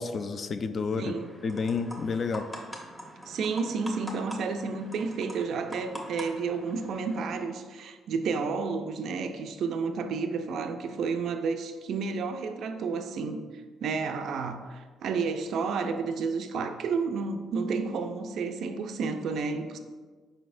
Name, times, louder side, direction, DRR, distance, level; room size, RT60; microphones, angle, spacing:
voice 1, 0.0-1.1 1.4-2.5, left 4 dB, 50° left, 10 dB, 0.3 m, -30 dB
sound 1, 0.9-7.4, equal, 10° left, 0.9 m, -44 dB
voice 2, 1.0-1.3 3.3-13.4 13.8-19.8, right 4 dB, 70° right, 7 dB, 0.3 m, -31 dB
4.9 x 4.1 x 2.5 m, 1.5 s
cardioid pair, 90°, 0 cm